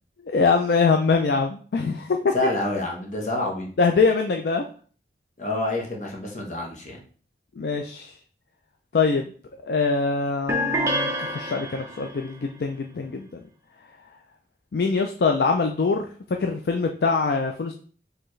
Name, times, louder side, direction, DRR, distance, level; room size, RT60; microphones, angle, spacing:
voice 1, 0.3-2.2 3.8-4.6 7.6-8.1 8.9-9.3 9.7-13.4 14.7-17.7, left 4 dB, 60° left, 4 dB, 0.4 m, -23 dB
voice 2, 2.3-3.7 5.4-7.0, left 2 dB, 45° left, 0 dB, 1.1 m, -28 dB
sound 1, 10.5-12.2, equal, 15° right, 0.6 m, -27 dB
4.5 x 3.3 x 3.1 m, 0.43 s
head